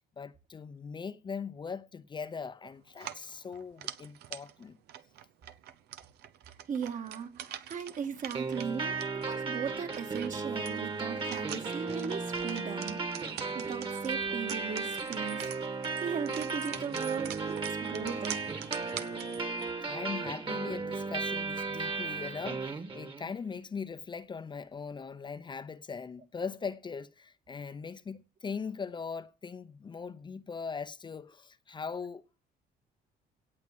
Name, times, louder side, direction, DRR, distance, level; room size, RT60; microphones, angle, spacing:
voice 1, 0.2-4.8 19.8-32.5, left 5 dB, 25° left, 0.8 m, -40 dB
sound 1, 2.9-19.7, right 11 dB, 75° right, 0.9 m, -45 dB
voice 2, 6.7-9.0 9.2-15.5 16.0-18.5, right 6 dB, 50° right, 2.3 m, -38 dB
sound 2, 8.3-23.3, right 4 dB, 30° right, 2.0 m, -35 dB
17.5 x 6.7 x 7.5 m
cardioid pair, 110°, 17 cm